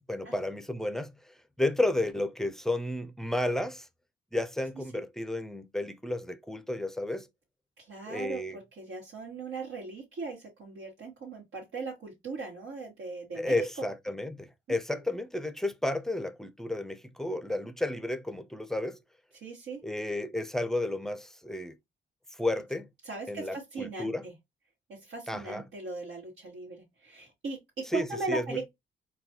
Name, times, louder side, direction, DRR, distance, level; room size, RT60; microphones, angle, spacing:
voice 1, 0.1-3.9 4.3-7.3 8.1-8.6 13.4-19.0 19.8-21.8 22.3-22.9 23.3-24.3 25.3-25.6 27.8-28.7, left 1 dB, ahead, 0.5 m, -32 dB
voice 2, 7.8-13.7 14.9-15.0 19.4-19.8 23.0-24.3 24.9-28.7, right 3 dB, 75° right, 1.4 m, -38 dB
4.0 x 2.3 x 2.7 m
cardioid pair, 70°, 21 cm